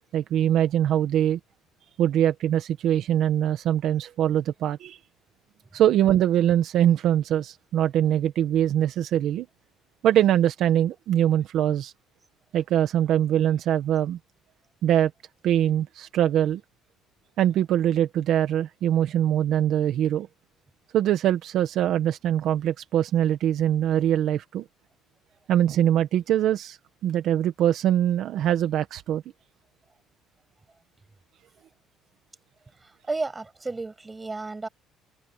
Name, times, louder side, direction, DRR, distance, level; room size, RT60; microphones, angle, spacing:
voice 1, 0.1-1.4 2.0-5.0 5.7-9.5 10.0-11.9 12.5-14.2 14.8-15.1 15.4-16.6 17.4-20.3 20.9-24.6 25.5-29.2, right 11 dB, 60° right, 1.5 m, -23 dB
voice 2, 33.1-34.7, right 3 dB, 15° right, 7.2 m, -32 dB
cardioid pair, 130°, 0 cm